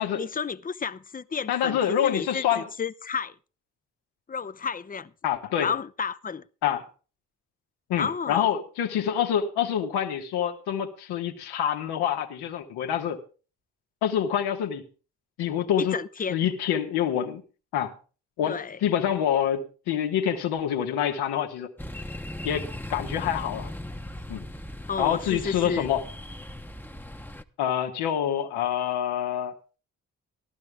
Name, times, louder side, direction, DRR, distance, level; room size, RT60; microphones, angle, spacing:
voice 1, 0.0-3.3 4.3-5.1 5.6-6.4 8.0-8.5 15.8-16.4 18.5-18.8 24.9-25.9, left 6 dB, 20° left, 0.7 m, -32 dB
voice 2, 1.5-2.6 5.2-5.7 6.6-6.9 7.9-13.2 14.0-14.8 15.4-16.0 16.3-17.4 17.7-17.9 18.4-21.7 22.4-23.7 24.3-24.4 25.0-26.0 27.6-29.5, left 9 dB, 75° left, 1.5 m, -26 dB
sound 1, 21.8-27.4, left 1 dB, 5° left, 1.0 m, -38 dB
15.0 x 12.0 x 3.5 m
hypercardioid pair, 40°, 39 cm